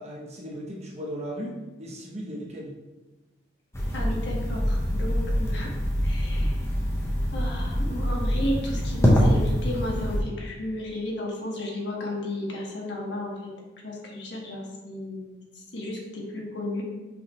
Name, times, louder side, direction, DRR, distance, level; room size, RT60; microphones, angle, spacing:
voice 1, 0.0-2.8, equal, 35° right, -2 dB, 1.0 m, -36 dB
sound 1, 3.7-10.2, equal, 15° left, 1.0 m, -25 dB
voice 2, 3.9-5.7 6.0-6.7 7.3-13.5 13.8-15.4 15.7-16.8, left 1 dB, 60° left, -2 dB, 1.4 m, -33 dB
6.0 x 3.9 x 4.4 m, 1.1 s
head